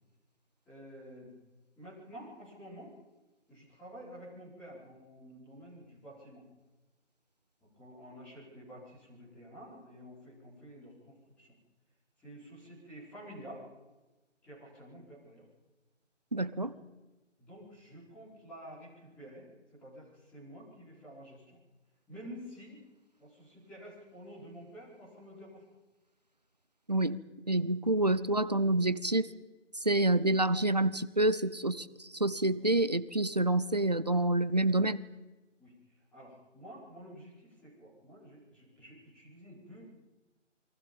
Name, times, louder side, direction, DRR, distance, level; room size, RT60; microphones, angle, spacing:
voice 1, 0.6-1.3 1.8-2.9 3.5-6.4 7.7-11.6 12.2-13.6 14.4-15.4 16.6-16.7 17.4-21.6 22.1-22.8 23.2-25.6 35.6-35.7 36.1-40.0, equal, 5° left, -11 dB, 5.1 m, -50 dB
voice 2, 16.3-16.7 26.9-27.2 27.5-29.3 29.8-35.0, right 2 dB, 35° right, 15 dB, 0.7 m, -28 dB
28.5 x 23.0 x 5.4 m, 1.1 s
figure-of-eight pair, 170°, 37 cm